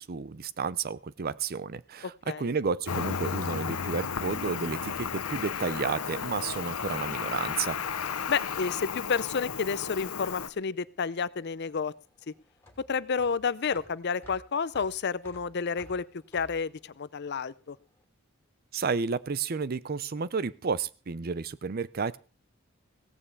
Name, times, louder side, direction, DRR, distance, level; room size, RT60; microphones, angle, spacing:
voice 1, 0.0-7.8 18.7-22.2, right 5 dB, 45° right, 18 dB, 0.5 m, -31 dB
Cricket, 2.9-10.5, left 6 dB, 85° left, 0.8 m, -33 dB
voice 2, 8.3-11.9 12.9-16.0 16.3-17.8, left 5 dB, 50° left, 18 dB, 0.5 m, -30 dB
sound 1, 11.3-17.8, left 1 dB, 10° left, 2.7 m, -54 dB
16.5 x 5.5 x 8.3 m, 0.36 s
head